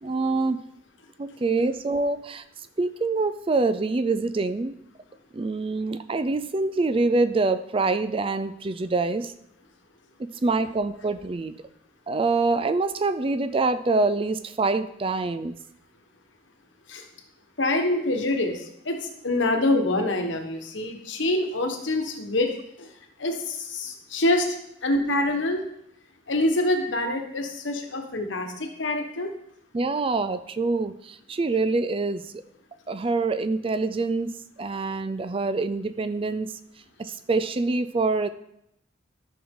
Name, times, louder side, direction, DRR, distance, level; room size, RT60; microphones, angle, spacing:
voice 1, 0.0-0.6 1.2-2.4 2.8-4.7 5.3-9.3 10.2-11.5 12.1-15.6 29.7-32.3 32.9-36.5 37.0-38.3, right 3 dB, 30° right, 12 dB, 0.4 m, -25 dB
voice 2, 17.6-22.5 22.8-22.9 23.2-25.6 26.3-29.3, left 1 dB, 75° left, 4 dB, 1.3 m, -26 dB
12.5 x 6.1 x 3.8 m, 0.77 s
head